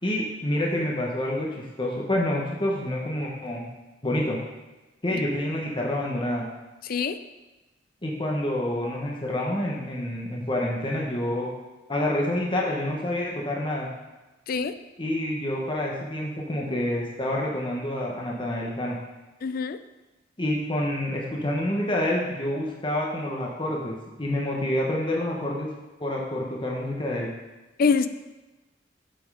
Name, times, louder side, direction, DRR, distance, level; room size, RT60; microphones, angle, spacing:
voice 1, 0.0-3.7 4.0-4.4 5.0-6.4 8.0-11.5 11.9-13.9 15.0-19.0 20.4-25.7 26.0-27.3, left 1 dB, 25° left, -2 dB, 1.2 m, -28 dB
voice 2, 19.4-19.8 27.8-28.1, left 5 dB, 50° left, 12 dB, 0.4 m, -24 dB
7.9 x 6.2 x 5.0 m, 1.1 s
head